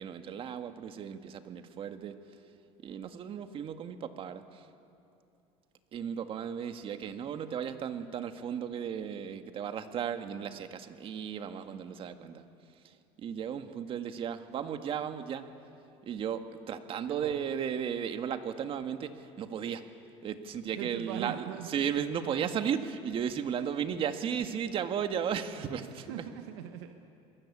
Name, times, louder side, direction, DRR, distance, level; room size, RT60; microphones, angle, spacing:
voice 1, 0.0-2.2 2.8-4.7 5.9-12.5 12.8-15.4 16.0-19.9 20.2-26.1, right 8 dB, 40° right, 8 dB, 1.8 m, -35 dB
voice 2, 17.0-17.5 20.7-21.9 25.8-26.9, right 11 dB, 85° right, 6 dB, 1.5 m, -41 dB
28.0 x 22.0 x 8.6 m, 2.7 s
supercardioid pair, 115°, 13 cm